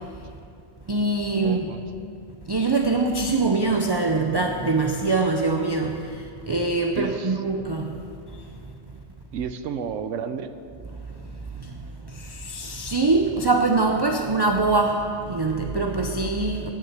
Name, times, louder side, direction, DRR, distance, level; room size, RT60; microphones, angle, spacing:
voice 1, 0.9-1.7 2.5-5.9 6.5-7.9 12.2-15.0 15.3-16.7, right 3 dB, 35° right, 3 dB, 0.4 m, -23 dB
voice 2, 1.4-1.8 7.0-7.4 9.3-10.5, right 7 dB, 75° right, 10 dB, 1.0 m, -31 dB
10.0 x 7.5 x 8.1 m, 2.5 s
omnidirectional pair, 1.3 m